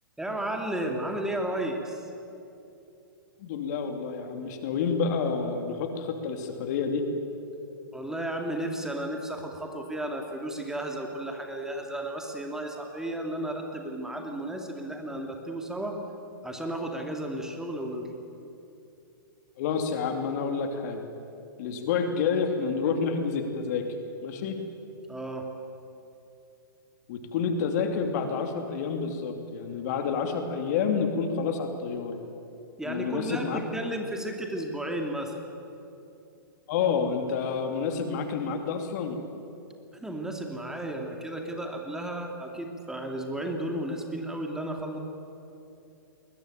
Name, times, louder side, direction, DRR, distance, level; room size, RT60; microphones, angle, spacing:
voice 1, 0.2-2.1 7.9-16.0 16.4-18.1 25.1-25.4 32.8-35.4 39.9-45.0, right 1 dB, 5° right, 2 dB, 2.5 m, -33 dB
voice 2, 3.4-7.1 19.6-21.1 21.6-23.8 24.2-24.6 27.1-32.1 32.9-33.6 36.7-39.2, left 5 dB, 50° left, 5 dB, 2.8 m, -29 dB
21.0 x 20.0 x 9.1 m, 2.8 s
hypercardioid pair, 120°, 12 cm